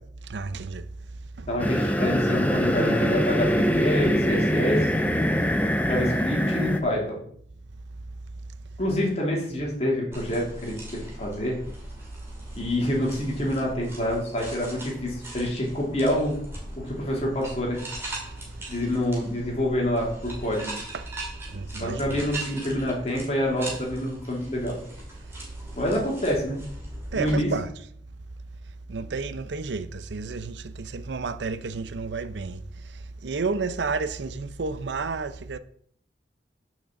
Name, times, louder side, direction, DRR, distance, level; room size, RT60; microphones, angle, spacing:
voice 1, 0.3-0.9 1.4-1.5 20.9-21.1 21.5-22.2 27.1-27.7 28.9-32.6 33.2-35.6, right 4 dB, 80° right, 0.6 m, -31 dB
voice 2, 1.5-4.9 5.9-7.2 8.8-11.6 12.6-16.4 16.8-17.8 18.7-20.8 21.8-24.8 25.8-26.6 27.1-27.5, equal, 35° left, 3.0 m, -27 dB
sound 1, 1.6-6.8, equal, 10° left, 0.7 m, -23 dB
sound 2, 10.1-27.3, right 1 dB, 15° right, 2.4 m, -40 dB
6.4 x 6.1 x 7.0 m
head